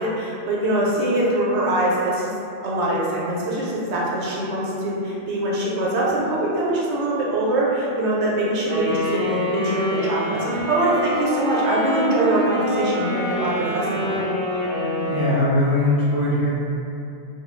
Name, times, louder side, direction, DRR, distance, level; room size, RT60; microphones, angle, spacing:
voice 1, 0.0-2.3 2.6-14.2, right 1 dB, 70° right, -5 dB, 0.9 m, -23 dB
Wind instrument woodwind instrument, 8.7-15.6, equal, 60° left, 1.1 m, -26 dB
voice 2, 15.0-16.5, left 2 dB, 30° left, -11 dB, 0.6 m, -20 dB
2.6 x 2.3 x 3.0 m, 2.7 s
omnidirectional pair, 1.2 m